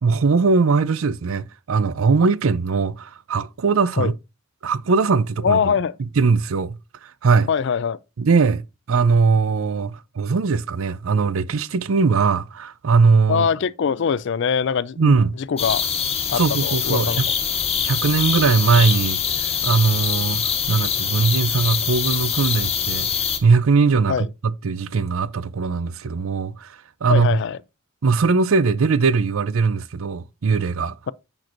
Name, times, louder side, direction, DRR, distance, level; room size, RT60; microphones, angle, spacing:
voice 1, 0.0-4.1 4.6-5.8 6.2-7.5 8.2-13.5 15.0-15.3 16.4-17.3 17.8-19.2 19.6-23.1 23.4-27.4 28.0-31.0, right 4 dB, 80° right, 0.5 m, -20 dB
voice 2, 5.4-5.9 7.5-8.0 13.3-15.9 16.3-17.2 24.1-24.3 27.1-27.6, left 6 dB, 60° left, 0.4 m, -22 dB
sound 1, 15.6-23.4, left 7 dB, 30° left, 1.2 m, -24 dB
8.9 x 6.1 x 2.5 m
head